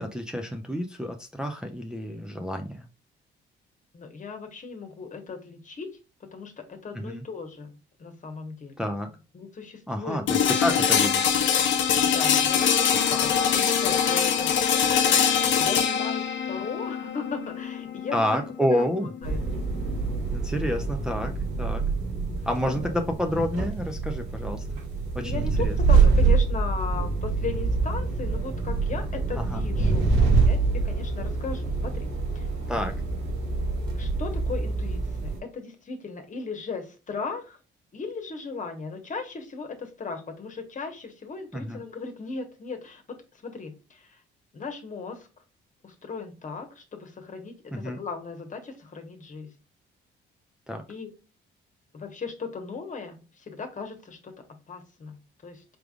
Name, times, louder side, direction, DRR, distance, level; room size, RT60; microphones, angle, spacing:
voice 1, 0.0-2.9 6.9-7.2 8.8-9.1 9.9-11.4 12.9-13.0 18.1-19.1 20.3-21.8 22.4-24.7 25.1-25.7 29.4-29.6 32.7-32.9 41.5-41.8 47.7-48.0 50.7-50.8, equal, 5° right, 3 dB, 0.6 m, -29 dB
voice 2, 3.9-5.9 6.2-7.7 8.0-8.8 9.3-10.2 10.7-10.8 12.0-14.6 15.1-18.4 18.7-18.9 19.2-19.4 22.0-22.7 25.1-30.1 30.4-32.1 32.3-32.5 33.9-37.6 37.9-44.2 44.5-45.3 45.8-49.5 50.9-51.1 51.9-55.6, left 4 dB, 40° left, 6 dB, 1.2 m, -37 dB
sound 1, 10.3-20.2, left 7 dB, 70° left, 0.8 m, -23 dB
sound 2, 19.2-35.4, right 4 dB, 90° right, 2.1 m, -25 dB
4.9 x 3.4 x 2.4 m, 0.33 s
cardioid pair, 90°, 20 cm